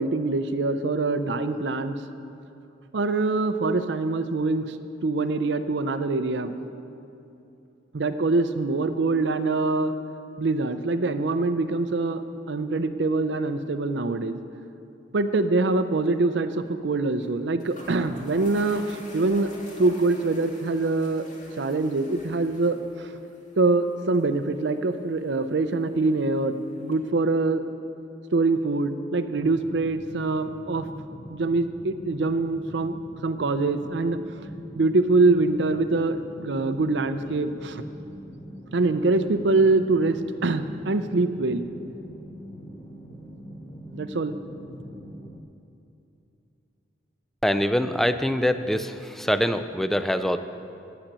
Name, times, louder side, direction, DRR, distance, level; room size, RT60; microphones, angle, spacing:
voice 1, 0.0-2.0 2.9-4.8 5.0-6.5 7.9-9.9 10.4-12.2 12.5-14.4 15.1-19.5 19.8-21.3 21.6-23.1 23.6-27.6 28.3-30.9 31.3-32.9 33.2-34.2 34.8-37.8 38.7-41.6 43.9-44.4, right 3 dB, 70° right, 10 dB, 0.6 m, -24 dB
sound 1, 15.5-15.8 16.0-16.1 17.2-17.3 17.6-27.0, equal, 45° left, 1.9 m, -48 dB
sound 2, 29.3-45.4, equal, 25° left, 0.9 m, -43 dB
voice 2, 47.4-50.4, equal, ahead, 10 dB, 0.4 m, -24 dB
8.8 x 8.1 x 8.7 m, 2.7 s
head